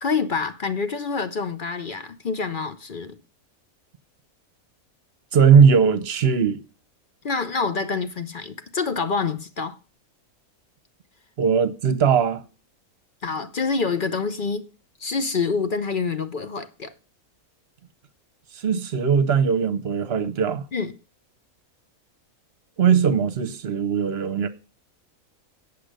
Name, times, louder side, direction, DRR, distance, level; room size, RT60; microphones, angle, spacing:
voice 1, 0.0-3.2 7.2-9.8 13.2-14.7 15.0-16.9 20.7-20.9, left 4 dB, 45° left, 0.7 m, -27 dB
voice 2, 5.3-6.6 11.4-12.4 18.6-20.6 22.8-24.5, right 6 dB, 50° right, 1.1 m, -19 dB
8.7 x 7.6 x 6.5 m
omnidirectional pair, 1.6 m